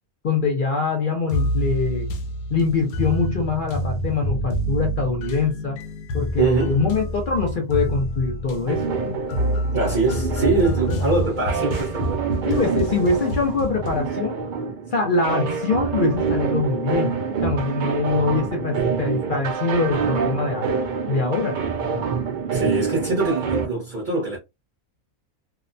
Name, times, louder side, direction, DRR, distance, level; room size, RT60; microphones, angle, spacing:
voice 1, 0.2-2.1 2.5-5.8 6.1-9.0 12.5-14.4 14.9-20.7 21.1-21.6, left 4 dB, 55° left, 0.5 m, -23 dB
sound 1, 1.3-14.1, equal, 80° left, 1.0 m, -28 dB
voice 2, 6.4-6.9 9.7-12.3 22.5-24.4, right 3 dB, 40° right, 0.9 m, -23 dB
sound 2, 8.7-23.7, right 6 dB, 85° right, 0.4 m, -26 dB
2.8 x 2.1 x 2.5 m
omnidirectional pair, 1.5 m